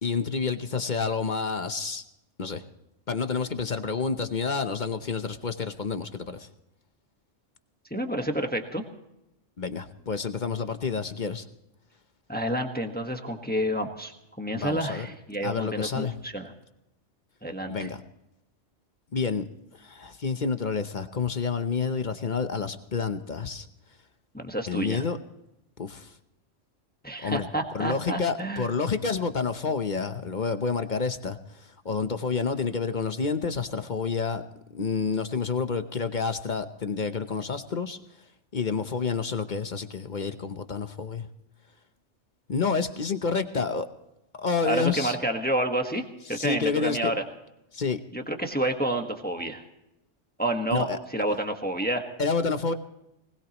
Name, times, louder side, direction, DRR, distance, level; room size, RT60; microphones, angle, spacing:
voice 1, 0.0-2.0 2.4-2.6 3.1-6.5 9.6-11.5 14.5-15.1 15.4-16.2 17.7-18.0 19.1-19.4 19.8-23.7 24.7-25.2 25.8-26.1 27.2-27.5 27.7-34.4 34.7-38.0 38.5-41.3 42.5-43.9 44.3-45.2 46.3-47.1 47.7-48.0 50.7-51.0 52.2-52.7, left 5 dB, 40° left, 9 dB, 0.9 m, -29 dB
voice 2, 7.9-8.8 12.3-16.5 17.4-17.9 24.3-25.0 27.0-28.7 44.6-46.0 46.3-47.1 48.1-49.6 50.4-52.0, right 1 dB, 10° left, 4 dB, 1.3 m, -29 dB
21.0 x 19.5 x 3.0 m, 0.86 s
omnidirectional pair, 1.3 m